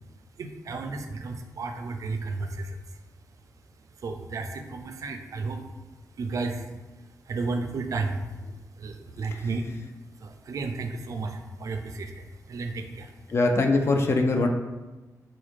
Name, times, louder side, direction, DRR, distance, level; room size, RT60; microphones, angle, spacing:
voice 1, 0.4-3.0 4.0-5.6 6.2-6.9 7.3-8.2 8.8-9.7 10.2-13.1, right 3 dB, 60° right, 5 dB, 0.4 m, -33 dB
voice 2, 13.3-14.5, left 2 dB, 45° left, 4 dB, 0.3 m, -22 dB
4.0 x 2.4 x 3.1 m, 1.2 s
wide cardioid pair, 115°, 6 cm